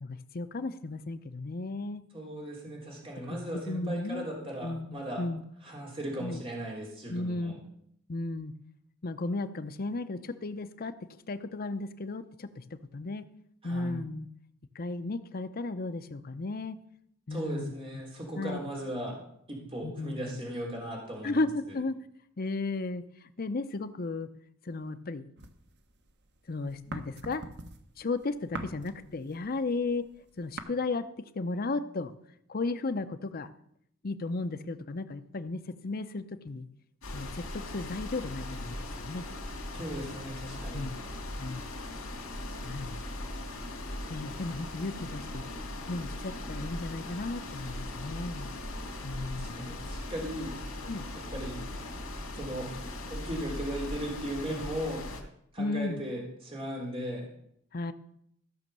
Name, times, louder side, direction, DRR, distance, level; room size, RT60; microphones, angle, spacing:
voice 1, 0.0-2.0 3.3-3.4 3.7-4.3 4.6-5.4 6.2-6.4 7.1-7.5 8.1-8.5 9.0-10.9 11.3-12.6 12.9-13.2 13.6-14.3 14.7-16.8 17.3-17.7 18.3-18.6 19.8-20.4 21.2-22.0 22.4-23.1 23.4-24.3 24.6-25.3 26.5-27.4 28.0-30.1 30.4-31.1 31.3-32.1 32.5-33.5 34.0-36.7 37.1-39.3 40.7-41.0 41.4-41.7 42.6-43.0 44.1-45.4 45.9-48.5 49.0-49.7 50.8-51.0 54.5-54.6 55.6-56.0 57.7-57.9, left 3 dB, 45° left, 11 dB, 0.6 m, -34 dB
voice 2, 2.1-5.2 5.6-7.6 13.6-14.0 17.3-19.2 19.5-21.4 39.7-40.9 48.9-50.6 51.1-51.6 52.3-52.7 53.1-55.1 55.5-57.3, right 1 dB, 25° right, -2 dB, 3.5 m, -37 dB
sound 1, 25.4-26.3 26.6-30.6, right 2 dB, 55° right, 1.1 m, -42 dB
sound 2, 37.0-55.2, left 1 dB, 80° left, 2.4 m, -39 dB
sound 3, 40.7-53.0, equal, 5° right, 4.3 m, -52 dB
15.0 x 6.2 x 6.8 m, 0.71 s
head